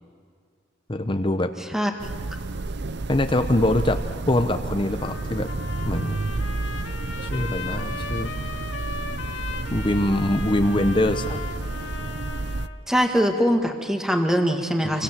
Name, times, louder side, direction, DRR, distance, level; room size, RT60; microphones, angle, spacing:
voice 1, 0.9-1.5 3.1-4.0 4.3-5.5 5.8-6.2 7.3-8.3 9.7-11.4 14.8-15.0, left 1 dB, 25° left, 7 dB, 0.9 m, -23 dB
sound 1, 2.0-12.7, right 3 dB, 60° right, 0.7 m, -31 dB
Trumpet, 4.9-12.8, left 5 dB, 70° left, 2.0 m, -37 dB
voice 2, 12.9-15.0, equal, 5° right, 4 dB, 1.9 m, -22 dB
28.0 x 24.5 x 7.5 m, 2.1 s
head